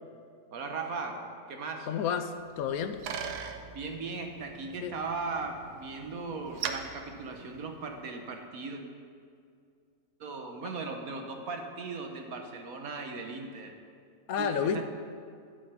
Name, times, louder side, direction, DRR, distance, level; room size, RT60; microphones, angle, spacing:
voice 1, 0.5-1.9 3.7-8.8 10.2-13.7 14.4-14.8, right 4 dB, 65° right, 3 dB, 1.5 m, -38 dB
voice 2, 1.9-3.0 4.8-4.9 14.3-14.8, left 7 dB, 70° left, 9 dB, 1.0 m, -30 dB
Bicycle, 2.4-8.1, right 7 dB, 85° right, 1.3 m, -42 dB
12.0 x 5.8 x 6.8 m, 2.3 s
omnidirectional pair, 1.6 m